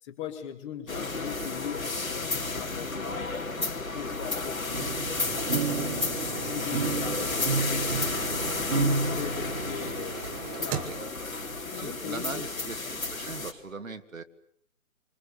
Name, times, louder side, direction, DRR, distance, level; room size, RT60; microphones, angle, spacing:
voice 1, 0.0-3.3 3.7-6.1 6.4-8.1 8.7-11.0 11.5-12.5, left 8 dB, 20° left, 6 dB, 2.6 m, -40 dB
sound 1, 0.9-13.5, left 3 dB, 70° left, 3.8 m, -32 dB
sound 2, 4.7-9.9, right 4 dB, 50° right, 1.4 m, -31 dB
sound 3, 5.1-12.2 12.7-12.8, right 8 dB, 15° right, 1.4 m, -40 dB
voice 2, 11.7-14.2, right 4 dB, 70° right, 8 dB, 2.3 m, -40 dB
30.0 x 25.5 x 7.0 m, 0.65 s
figure-of-eight pair, 140°, 42 cm